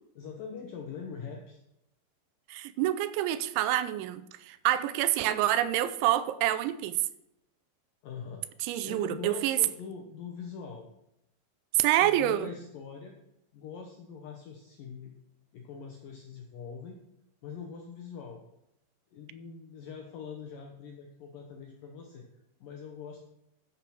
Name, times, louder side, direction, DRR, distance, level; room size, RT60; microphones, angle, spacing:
voice 1, 0.2-1.6 8.0-8.4 8.8-10.9 12.0-13.1 13.5-15.1 15.5-17.0 17.4-18.4 19.1-22.2 22.6-23.2, left 6 dB, 75° left, 2 dB, 2.0 m, -43 dB
voice 2, 2.5-7.0 8.6-9.6 11.8-12.5, right 13 dB, 85° right, 14 dB, 2.9 m, -27 dB
13.5 x 5.9 x 6.0 m, 0.81 s
omnidirectional pair, 5.4 m